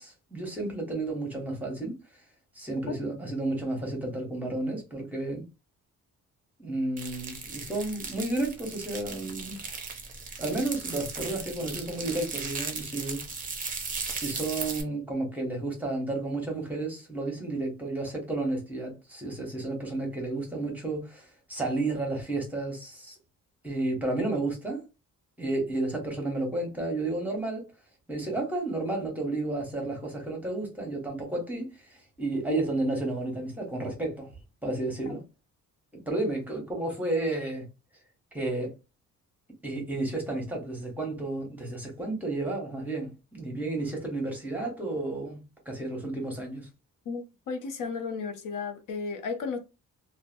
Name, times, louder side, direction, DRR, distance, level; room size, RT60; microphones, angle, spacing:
voice 1, 0.0-2.0 2.5-5.4 6.6-9.6 10.4-13.2 14.1-23.1 23.6-24.8 25.4-27.6 28.1-34.3 34.6-35.2 35.9-37.6 38.3-38.7 39.6-46.7, right 2 dB, 5° right, 0.9 m, -32 dB
sound 1, 7.0-14.8, right 4 dB, 25° right, 0.5 m, -37 dB
voice 2, 47.1-49.6, left 5 dB, 80° left, 0.7 m, -34 dB
2.7 x 2.1 x 2.5 m
wide cardioid pair, 160°, 32 cm